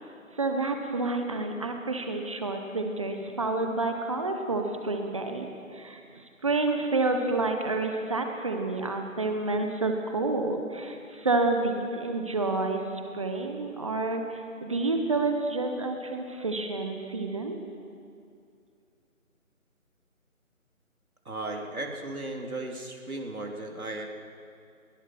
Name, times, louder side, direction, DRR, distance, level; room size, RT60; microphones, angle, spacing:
voice 1, 0.3-12.8 13.1-17.6, right 3 dB, 25° right, 4 dB, 1.4 m, -29 dB
voice 2, 21.3-24.1, right 2 dB, 85° right, 2 dB, 3.8 m, -36 dB
30.0 x 20.0 x 6.2 m, 2.4 s
figure-of-eight pair, 165°, 42 cm